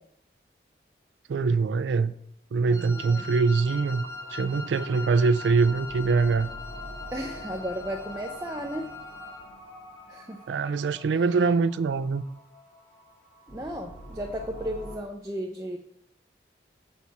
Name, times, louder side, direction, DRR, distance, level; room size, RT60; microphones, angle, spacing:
voice 1, 1.3-2.1 2.5-6.5 10.5-12.2, right 4 dB, 80° right, 0.3 m, -24 dB
Wind instrument woodwind instrument, 2.7-9.4, left 4 dB, 15° left, 0.7 m, -41 dB
voice 2, 2.7-3.2 7.1-8.9 10.1-10.4 11.1-11.2 13.5-15.8, equal, 15° right, 0.5 m, -34 dB
sound 1, 2.8-15.0, equal, 35° left, 1.8 m, -46 dB
7.4 x 4.1 x 4.6 m
head